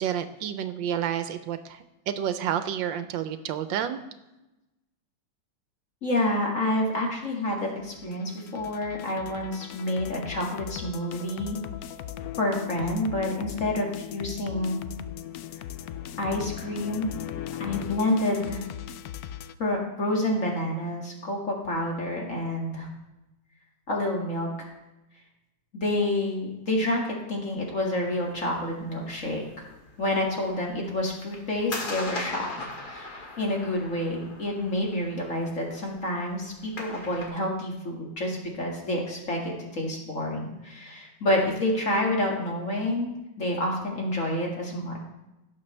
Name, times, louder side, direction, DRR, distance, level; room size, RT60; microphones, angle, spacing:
voice 1, 0.0-1.8 2.1-4.0, right 9 dB, 80° right, 11 dB, 1.3 m, -29 dB
voice 2, 6.0-11.6 12.4-14.8 16.2-17.1 17.6-18.7 19.6-22.9 23.9-24.5 25.7-29.7 30.0-45.0, left 1 dB, 40° left, -1 dB, 2.2 m, -28 dB
sound 1, 7.6-19.5, left 11 dB, 75° left, 0.8 m, -38 dB
sound 2, 28.0-37.3, left 2 dB, 60° left, 2.4 m, -41 dB
17.5 x 6.7 x 3.3 m, 0.99 s
omnidirectional pair, 2.0 m